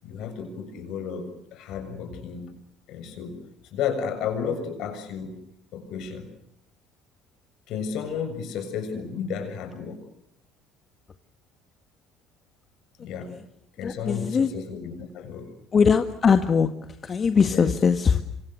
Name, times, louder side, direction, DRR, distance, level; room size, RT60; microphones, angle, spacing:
voice 1, 0.0-2.5 2.9-3.4 3.7-5.3 5.7-6.3 7.7-10.0 13.0-13.3 13.8-15.5 17.5-17.7, left 7 dB, 65° left, 8 dB, 7.2 m, -32 dB
voice 2, 13.8-14.5 15.7-16.7 17.0-18.2, left 6 dB, 40° left, 8 dB, 1.8 m, -21 dB
27.5 x 26.0 x 6.7 m, 0.79 s
hypercardioid pair, 70°, 0 cm